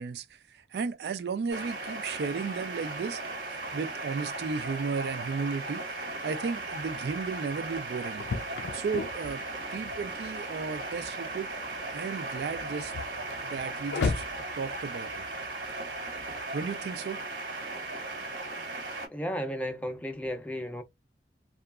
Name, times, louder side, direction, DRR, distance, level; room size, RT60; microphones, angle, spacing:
voice 1, 0.0-3.2 3.7-5.8 6.2-8.2 8.7-9.4 9.7-11.5 11.9-12.9 13.4-14.3 14.6-15.2 16.5-17.2, right 5 dB, 65° right, 0.3 m, -34 dB
sound 1, 1.5-19.1, right 2 dB, 90° right, 1.3 m, -37 dB
sound 2, 6.7-16.4, left 4 dB, 70° left, 0.4 m, -39 dB
voice 2, 19.1-20.8, equal, 10° left, 0.4 m, -34 dB
2.7 x 2.3 x 2.3 m
head